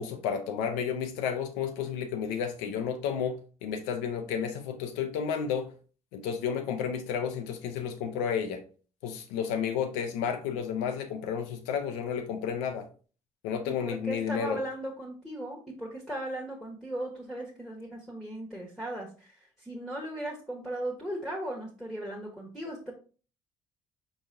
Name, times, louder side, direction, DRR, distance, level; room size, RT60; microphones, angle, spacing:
voice 1, 0.0-5.7 6.1-8.6 9.0-12.9 13.4-14.6, left 7 dB, 75° left, 0.6 m, -32 dB
voice 2, 13.8-22.9, right 1 dB, ahead, 1.3 m, -37 dB
4.7 x 4.0 x 2.6 m
hypercardioid pair, 50°, 16 cm